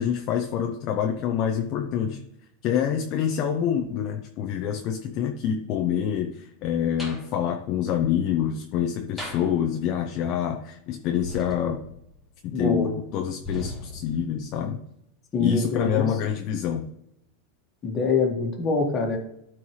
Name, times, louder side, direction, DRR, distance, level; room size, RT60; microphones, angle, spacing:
voice 1, 0.0-2.2 2.6-11.8 12.4-14.8 15.4-16.9, left 9 dB, 40° left, 4 dB, 0.7 m, -26 dB
sound 1, 7.0-7.3 9.2-9.5 11.2-12.2 13.4-14.3, left 1 dB, ahead, 2.6 m, -37 dB
voice 2, 12.5-12.9 15.3-16.1 17.8-19.2, left 4 dB, 25° left, 1 dB, 1.7 m, -24 dB
12.5 x 4.5 x 3.2 m, 0.79 s
supercardioid pair, 155°, 0 cm